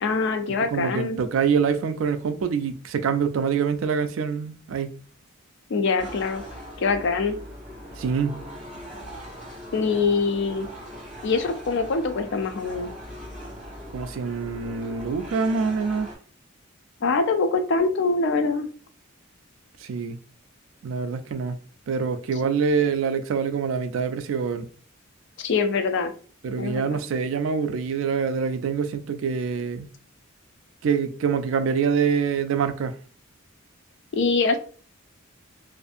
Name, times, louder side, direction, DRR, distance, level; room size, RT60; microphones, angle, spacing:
voice 1, 0.0-1.2 5.7-6.4 6.8-7.4 9.7-10.7 11.2-12.9 17.0-18.7 25.4-26.1 26.6-27.0 34.1-34.6, left 4 dB, 55° left, 0.4 m, -24 dB
voice 2, 0.7-5.0 8.0-8.4 13.9-16.1 19.8-20.2 20.8-21.6 21.9-24.7 26.4-29.9 30.8-33.0, right 6 dB, 65° right, 0.3 m, -25 dB
sound 1, 6.0-16.2, equal, 5° right, 1.4 m, -40 dB
2.6 x 2.5 x 2.4 m
head